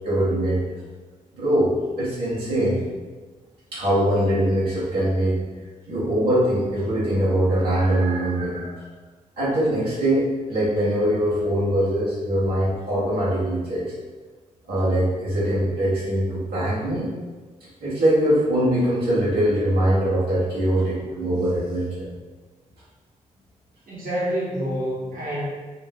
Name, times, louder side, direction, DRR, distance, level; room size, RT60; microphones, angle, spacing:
voice 1, 0.0-0.6 1.3-2.8 3.7-5.4 5.9-8.8 9.4-13.9 14.7-17.1 17.8-22.1, right 1 dB, 85° right, -10 dB, 1.2 m, -22 dB
voice 2, 23.9-25.4, equal, 65° right, -8 dB, 1.2 m, -27 dB
4.5 x 2.0 x 3.5 m, 1.4 s
supercardioid pair, 40°, 15 cm